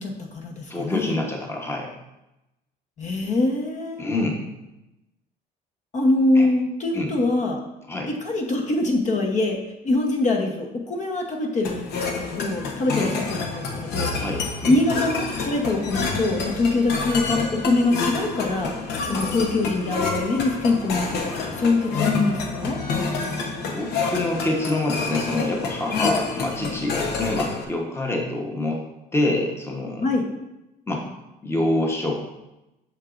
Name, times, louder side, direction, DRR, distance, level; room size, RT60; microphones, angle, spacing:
voice 1, 0.0-1.1 3.0-4.1 5.9-7.6 8.2-9.6 9.8-14.1 14.7-18.7 19.0-22.8 25.9-26.1 30.0-30.3, left 2 dB, 45° left, 2 dB, 1.0 m, -23 dB
voice 2, 0.7-1.9 4.0-4.4 6.3-6.5 6.9-7.1 7.9-8.1 12.9-13.1 14.2-14.7 23.7-28.8 29.1-30.0 30.9-31.1 31.4-32.2, left 1 dB, 15° left, 1 dB, 1.0 m, -26 dB
sound 1, 11.6-27.6, left 4 dB, 75° left, 0.9 m, -28 dB
8.0 x 6.0 x 2.5 m, 0.94 s
cardioid pair, 110°, 17 cm